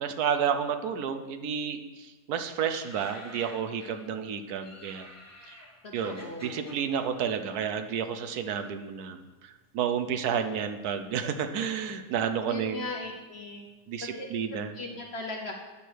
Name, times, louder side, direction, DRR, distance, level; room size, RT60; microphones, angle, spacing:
voice 1, 0.0-5.1 5.5-5.6 5.9-12.8 13.9-14.8, right 7 dB, 70° right, 8 dB, 1.1 m, -31 dB
sound 1, 2.6-4.2 4.6-8.5 8.7-9.6 10.2-10.8 11.1-11.2 11.4-13.7 14.0-14.1, left 1 dB, 10° left, 1.2 m, -51 dB
voice 2, 5.8-6.8 12.5-13.7 14.0-14.3 14.5-15.5, left 2 dB, 50° left, 2 dB, 0.9 m, -38 dB
9.9 x 6.5 x 4.6 m, 1.2 s
omnidirectional pair, 1.8 m